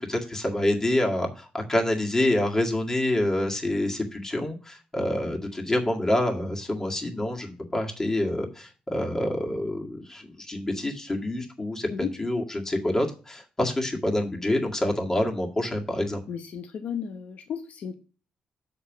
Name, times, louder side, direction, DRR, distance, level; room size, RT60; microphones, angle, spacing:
voice 1, 0.0-11.9 12.2-16.2, left 1 dB, 20° left, 1 dB, 1.9 m, -27 dB
voice 2, 16.3-17.9, left 7 dB, 70° left, 7 dB, 0.9 m, -34 dB
6.4 x 5.4 x 6.0 m, 0.36 s
cardioid pair, 80°, 3 cm